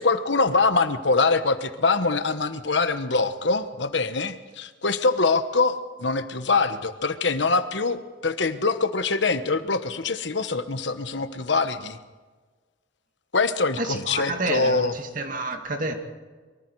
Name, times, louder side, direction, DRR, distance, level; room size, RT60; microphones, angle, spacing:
voice 1, 0.0-12.0 13.3-14.9, left 3 dB, 70° left, 10 dB, 1.3 m, -24 dB
voice 2, 13.8-15.9, right 2 dB, 45° right, 4 dB, 2.4 m, -29 dB
24.0 x 23.5 x 4.8 m, 1.3 s
head